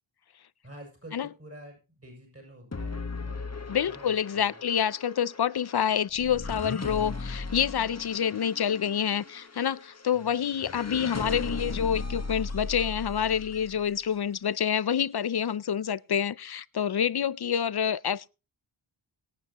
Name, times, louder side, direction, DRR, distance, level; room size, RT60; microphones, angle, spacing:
voice 1, 0.6-4.6 10.1-10.3, right 1 dB, 30° right, 6.8 m, -49 dB
sound 1, 2.7-14.0, left 3 dB, 35° left, 1.3 m, -37 dB
voice 2, 3.7-18.3, left 8 dB, 55° left, 0.5 m, -27 dB
24.0 x 8.9 x 2.9 m
wide cardioid pair, 65°, 48 cm